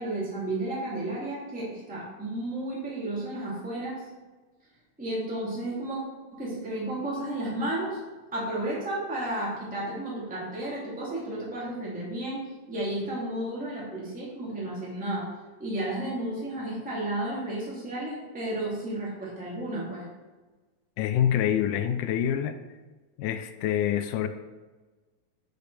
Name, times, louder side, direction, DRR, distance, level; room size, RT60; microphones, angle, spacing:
voice 1, 0.0-4.0 5.0-6.0 6.3-8.0 8.3-12.4 12.7-15.3 15.6-20.0, right 1 dB, 5° right, -7 dB, 2.3 m, -32 dB
voice 2, 21.0-22.6 23.2-24.3, left 10 dB, 80° left, 9 dB, 2.1 m, -26 dB
10.0 x 6.7 x 3.4 m, 1.3 s
omnidirectional pair, 3.7 m